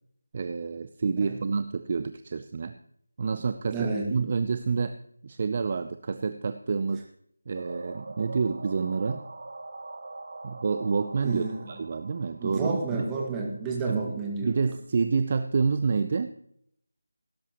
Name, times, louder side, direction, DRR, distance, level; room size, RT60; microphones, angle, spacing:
voice 1, 0.3-2.8 3.2-5.0 5.2-7.1 7.5-9.2 10.4-12.8 13.9-14.0 14.4-16.3, right 5 dB, 35° right, 10 dB, 0.5 m, -28 dB
voice 2, 3.7-4.1 11.2-11.7 12.4-14.7, right 3 dB, 10° right, -2 dB, 2.0 m, -31 dB
sound 1, 7.5-13.3, right 2 dB, 50° right, 1.8 m, -43 dB
18.0 x 11.0 x 3.0 m, 0.68 s
figure-of-eight pair, 165°, 0 cm